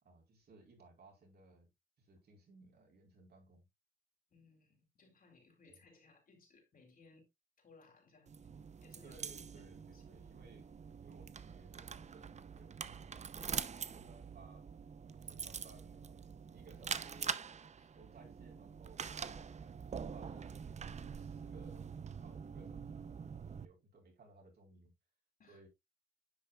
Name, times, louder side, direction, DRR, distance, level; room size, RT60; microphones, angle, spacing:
voice 1, 0.0-1.7 2.0-3.7 5.7-5.8 9.0-10.7 11.0-14.6 15.2-17.4 17.9-19.2 19.9-21.9 22.2-24.9 25.5-25.7, right 3 dB, 55° right, 4.6 m, -61 dB
voice 2, 4.3-7.3 7.6-8.5 8.8-10.2 17.8-17.9 25.4-25.6, left 3 dB, 45° left, 4.0 m, -65 dB
sound 1, 8.3-23.7, right 6 dB, 35° right, 0.7 m, -45 dB
10.5 x 7.0 x 2.4 m
cardioid pair, 90°, 20 cm